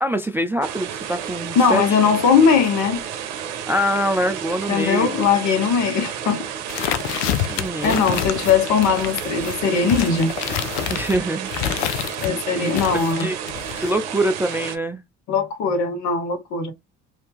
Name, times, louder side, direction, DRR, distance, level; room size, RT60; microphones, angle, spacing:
voice 1, 0.0-2.0 3.7-5.2 7.5-8.0 10.9-11.5 12.5-13.4 13.7-15.0, right 1 dB, 5° right, 0.4 m, -24 dB
sound 1, 0.6-14.8, right 9 dB, 75° right, 0.7 m, -31 dB
voice 2, 1.5-3.0 4.7-6.4 7.8-10.3 12.2-13.3 15.3-16.7, left 6 dB, 55° left, 1.2 m, -19 dB
sound 2, 6.7-12.3 12.7-13.9, left 12 dB, 70° left, 0.6 m, -27 dB
2.8 x 2.7 x 3.5 m
hypercardioid pair, 60°, 35 cm